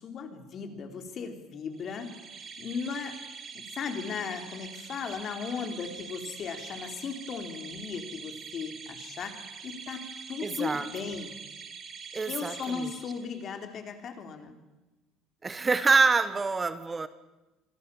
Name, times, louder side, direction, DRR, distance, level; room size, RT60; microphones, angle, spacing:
voice 1, 0.0-3.2 3.5-11.3 12.3-14.5, left 5 dB, 45° left, 7 dB, 3.9 m, -37 dB
sound 1, 1.8-13.6, right 6 dB, 40° right, 3.6 m, -44 dB
voice 2, 10.4-10.8 12.1-12.9 15.4-17.1, right 4 dB, 20° right, 13 dB, 1.2 m, -26 dB
27.0 x 23.5 x 7.1 m, 1.1 s
cardioid pair, 115°, 0 cm